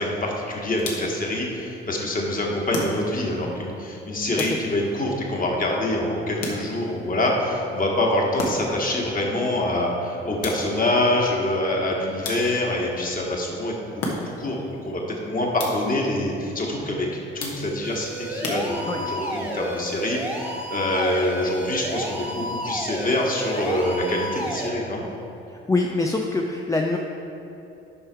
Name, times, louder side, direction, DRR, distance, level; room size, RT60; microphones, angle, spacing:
voice 1, 0.0-13.8 14.4-15.0 15.3-17.1 17.3-25.0, left 1 dB, 25° left, -2 dB, 1.8 m, -25 dB
sound 1, 0.8-1.3 2.7-3.4 4.4-5.0 6.4-7.0 8.4-8.9 10.4-10.9 12.2-12.8 14.0-14.6 15.6-16.0 17.4-17.9 18.4-19.2, left 2 dB, 55° left, 1.4 m, -33 dB
sound 2, 17.8-24.7, equal, 5° right, 1.4 m, -31 dB
voice 2, 25.7-27.0, left 2 dB, 10° left, 1 dB, 0.5 m, -24 dB
8.6 x 5.6 x 4.6 m, 2.9 s
figure-of-eight pair, 45°, 30 cm